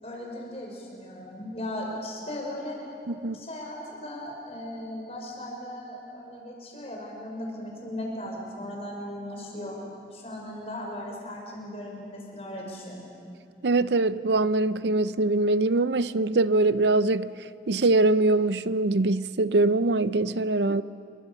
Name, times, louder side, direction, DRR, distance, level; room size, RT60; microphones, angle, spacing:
voice 1, 0.0-2.8 3.3-9.8 10.1-13.0, left 1 dB, 35° left, 6.2 m, -37 dB
voice 2, 3.1-3.4 13.6-17.3 17.7-20.8, right 2 dB, 80° right, 0.6 m, -23 dB
28.5 x 24.5 x 7.3 m
head